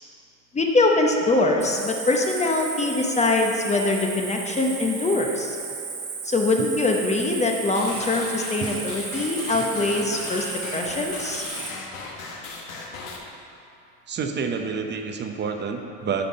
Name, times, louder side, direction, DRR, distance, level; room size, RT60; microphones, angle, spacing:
voice 1, 0.5-5.6 6.2-11.4, left 2 dB, 15° left, 1 dB, 0.9 m, -23 dB
Cricket, 1.6-11.7, right 5 dB, 65° right, 2.3 m, -34 dB
sound 1, 7.7-13.2, left 3 dB, 70° left, 1.5 m, -37 dB
voice 2, 14.1-16.3, right 5 dB, 25° right, 5 dB, 0.8 m, -29 dB
8.6 x 5.3 x 6.4 m, 2.7 s
hypercardioid pair, 90°, 41 cm